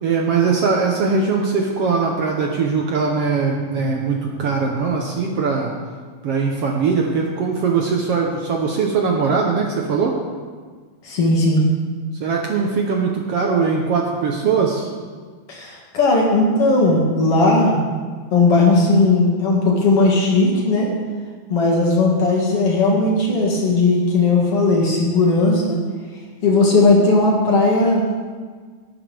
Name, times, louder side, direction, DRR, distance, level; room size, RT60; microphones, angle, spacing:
voice 1, 0.0-5.7 6.2-10.2 12.2-14.9, right 5 dB, 65° right, 0 dB, 1.7 m, -20 dB
voice 2, 11.0-11.6 15.5-17.8 18.3-20.9 21.5-25.8 26.4-28.0, left 2 dB, 50° left, -3 dB, 2.7 m, -17 dB
18.0 x 9.3 x 3.5 m, 1.5 s
omnidirectional pair, 3.5 m